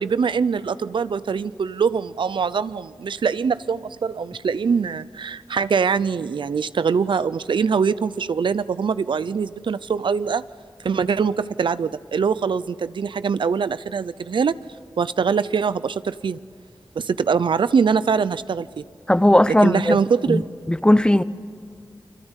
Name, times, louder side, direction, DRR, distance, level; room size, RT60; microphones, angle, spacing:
voice 1, 0.0-10.4 10.8-14.6 15.0-16.4 17.0-18.8 19.6-20.4, right 6 dB, 85° right, 15 dB, 0.6 m, -23 dB
voice 2, 19.1-20.0 20.3-20.4 20.7-21.2, left 1 dB, 10° left, 15 dB, 0.8 m, -16 dB
29.0 x 23.5 x 8.2 m, 2.2 s
wide cardioid pair, 75°, 8 cm